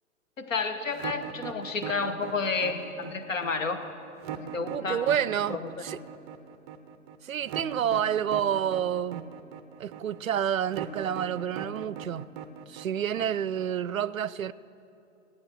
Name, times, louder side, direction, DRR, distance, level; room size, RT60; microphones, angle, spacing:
voice 1, 0.4-3.8 4.3-5.1 5.5-5.6, left 4 dB, 70° left, 1.3 m, -31 dB
sound 1, 0.9-13.8, right 9 dB, 20° right, 0.5 m, -40 dB
voice 2, 4.7-6.0 7.2-9.3 9.8-12.3 12.7-14.5, right 9 dB, 80° right, 0.5 m, -29 dB
16.5 x 9.5 x 6.4 m
figure-of-eight pair, 110°, 40 cm